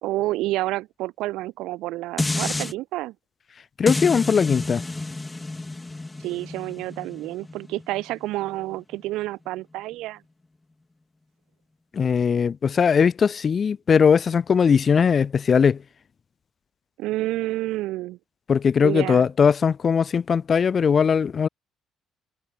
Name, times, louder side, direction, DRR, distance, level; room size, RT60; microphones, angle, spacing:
voice 1, 0.0-3.1 6.2-10.2 17.0-18.2 18.8-19.2, right 17 dB, 85° right, 2.1 m, -29 dB
sound 1, 2.2-2.7 3.9-9.0 9.5-9.6, left 2 dB, 15° left, 1.0 m, -30 dB
voice 2, 3.8-4.8 11.9-15.8 18.5-21.5, left 6 dB, 40° left, 1.0 m, -19 dB
cardioid pair, 105°, 0 cm